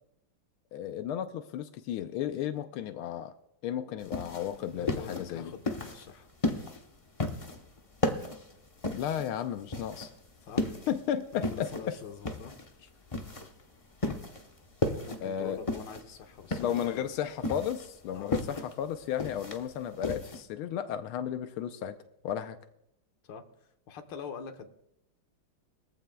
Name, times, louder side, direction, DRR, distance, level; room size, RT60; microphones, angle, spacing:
voice 1, 0.7-3.3 3.6-5.5 8.9-10.1 10.9-11.7 15.2-15.6 16.6-22.0 22.2-22.6, left 9 dB, 90° left, 9 dB, 1.5 m, -34 dB
sound 1, 4.0-20.4, left 2 dB, 40° left, 0.4 m, -35 dB
voice 2, 4.7-6.3 10.4-10.8 11.3-12.5 12.8-12.9 14.9-17.1 18.1-18.4 23.2-23.4 23.9-24.7, left 7 dB, 60° left, 5 dB, 1.8 m, -44 dB
21.5 x 15.0 x 2.3 m, 0.79 s
omnidirectional pair, 2.3 m